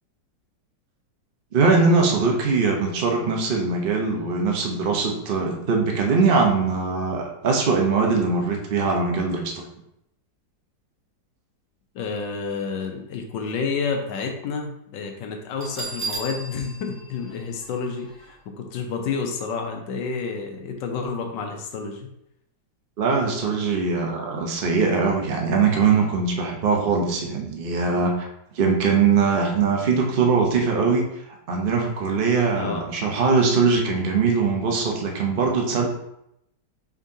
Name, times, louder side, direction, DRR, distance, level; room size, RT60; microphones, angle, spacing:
voice 1, 1.5-9.6 23.0-28.3 28.6-31.1 31.5-35.9, right 4 dB, 60° right, 1 dB, 0.5 m, -21 dB
voice 2, 11.9-22.1 32.5-32.9, left 5 dB, 80° left, 3 dB, 1.4 m, -30 dB
Bell, 15.6-18.3, right 3 dB, 10° right, 0.9 m, -35 dB
5.3 x 3.6 x 2.7 m, 0.79 s
omnidirectional pair, 1.9 m